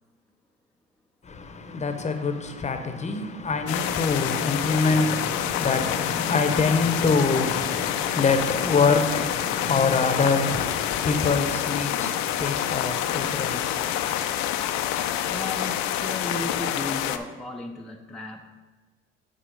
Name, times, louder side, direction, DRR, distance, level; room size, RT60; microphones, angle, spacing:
voice 1, 1.2-14.3, left 4 dB, 25° left, 0.9 m, -25 dB
sound 1, 3.7-17.2, left 11 dB, 65° left, 0.6 m, -27 dB
voice 2, 15.3-18.6, left 1 dB, ahead, 0.5 m, -35 dB
9.1 x 4.1 x 5.2 m
supercardioid pair, 85°, 30 cm